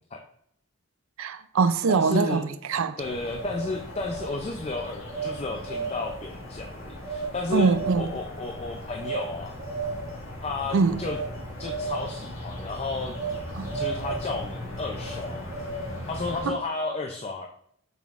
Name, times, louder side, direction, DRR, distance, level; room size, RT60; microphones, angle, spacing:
voice 1, 1.2-3.0 7.5-8.1 10.7-11.0 13.6-13.8 16.4-16.6, right 4 dB, 75° right, 0.4 m, -23 dB
voice 2, 1.9-2.4 3.0-7.7 8.0-9.6 10.4-11.2 11.6-13.2 13.7-15.5 16.1-17.5, left 3 dB, 30° left, 0.4 m, -32 dB
sound 1, 3.0-16.5, left 1 dB, 75° left, 2.0 m, -39 dB
sound 2, 3.3-4.4 5.1-5.4 5.6-6.3 7.0-7.3 7.6-8.2 9.0-9.3 9.6-10.2 11.0-11.3 11.6-12.2 13.1-13.4 13.6-14.5 15.0-16.0, right 4 dB, 30° right, 1.6 m, -34 dB
7.0 x 5.9 x 2.5 m
head